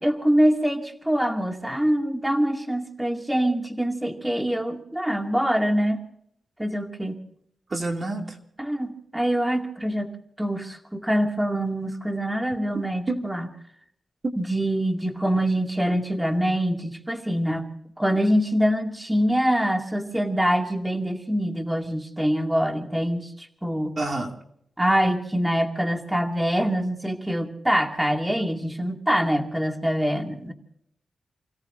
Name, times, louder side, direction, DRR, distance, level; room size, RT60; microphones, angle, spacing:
voice 1, 0.0-6.0 6.6-7.2 8.6-10.1 10.4-13.5 14.4-17.7 18.0-24.0 24.8-30.5, equal, 10° right, 3 dB, 2.3 m, -24 dB
voice 2, 7.7-8.4 13.1-13.2 14.2-14.3 23.9-24.4, right 2 dB, 40° right, 3 dB, 2.5 m, -27 dB
29.5 x 17.0 x 2.6 m, 0.70 s
cardioid pair, 65°, 0 cm